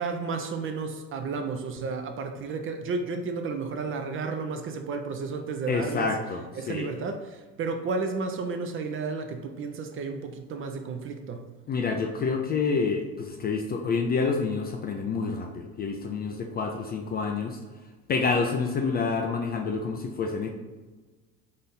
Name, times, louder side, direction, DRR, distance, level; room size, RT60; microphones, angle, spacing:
voice 1, 0.0-6.1 6.6-11.5, right 4 dB, 30° right, 6 dB, 0.5 m, -32 dB
voice 2, 5.7-6.9 11.7-17.6 18.1-20.5, left 4 dB, 25° left, 3 dB, 0.3 m, -28 dB
4.2 x 2.6 x 3.8 m, 1.3 s
hypercardioid pair, 70°, 41 cm